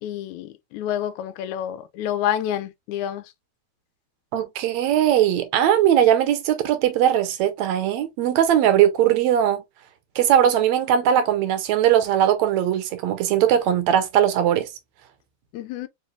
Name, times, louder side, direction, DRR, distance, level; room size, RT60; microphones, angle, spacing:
voice 1, 0.0-3.2 15.5-15.9, left 11 dB, 85° left, 1.9 m, -28 dB
voice 2, 4.3-9.6 10.2-14.7, right 10 dB, 75° right, 1.9 m, -19 dB
4.7 x 3.1 x 2.4 m
omnidirectional pair, 3.3 m